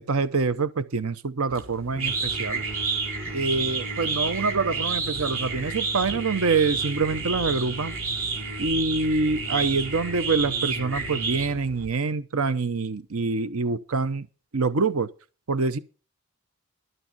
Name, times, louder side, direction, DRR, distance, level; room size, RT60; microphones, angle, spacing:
voice 1, 0.0-2.6 3.3-8.0 8.6-14.3 14.5-15.1 15.5-15.8, right 4 dB, 80° right, 0.8 m, -25 dB
sound 1, 1.5-11.9, right 4 dB, 65° right, 4.4 m, -30 dB
12.5 x 9.0 x 5.3 m
head